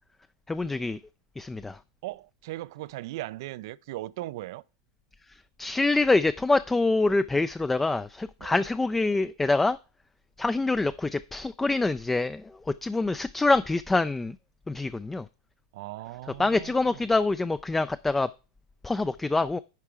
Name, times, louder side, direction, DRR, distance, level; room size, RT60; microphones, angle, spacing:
voice 1, 0.5-1.0 1.4-1.8 5.6-9.8 10.4-14.4 14.7-15.3 16.4-18.3 18.8-19.6, left 3 dB, 10° left, 0.3 m, -25 dB
voice 2, 2.0-4.6 8.4-8.6 15.7-17.0, right 17 dB, 60° right, 0.4 m, -38 dB
10.5 x 4.5 x 4.8 m
hypercardioid pair, 100°, 2 cm